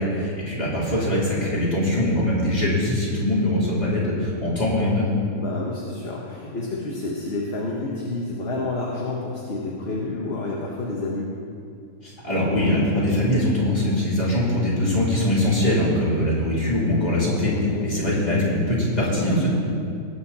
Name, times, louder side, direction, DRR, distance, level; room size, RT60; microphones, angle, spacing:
voice 1, 0.0-5.1 12.0-19.5, left 1 dB, 30° left, -7 dB, 3.4 m, -22 dB
voice 2, 5.3-11.3 17.5-17.9, left 2 dB, 45° left, -3 dB, 1.5 m, -29 dB
19.0 x 7.9 x 4.2 m, 2.3 s
omnidirectional pair, 1.5 m